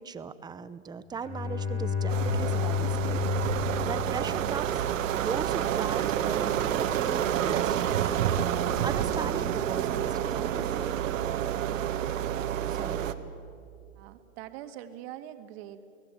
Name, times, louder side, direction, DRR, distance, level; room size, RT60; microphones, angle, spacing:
voice 1, 0.0-3.2 3.8-4.8 5.1-8.1 8.8-11.0 12.7-13.1, right 6 dB, 10° right, 13 dB, 0.6 m, -38 dB
Bowed string instrument, 1.1-4.9, left 7 dB, 40° left, 5.3 m, -31 dB
sound 1, 2.1-13.1, right 10 dB, 70° right, 1.7 m, -29 dB
voice 2, 14.0-15.9, right 12 dB, 50° right, 8 dB, 2.1 m, -43 dB
29.0 x 19.0 x 9.1 m, 2.4 s
hypercardioid pair, 135°, 40 cm